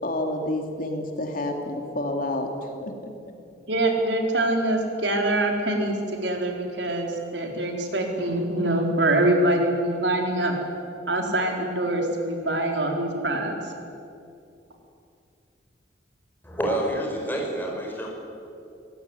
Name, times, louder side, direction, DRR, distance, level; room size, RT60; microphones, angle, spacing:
voice 1, 0.0-2.5 2.8-2.9, left 1 dB, 50° left, 3 dB, 3.2 m, -29 dB
voice 2, 3.7-10.6 11.1-13.6, right 1 dB, 80° right, 2 dB, 4.2 m, -24 dB
voice 3, 16.4-18.1, right 1 dB, 10° left, 0 dB, 5.9 m, -28 dB
23.5 x 19.0 x 9.9 m, 2.5 s
head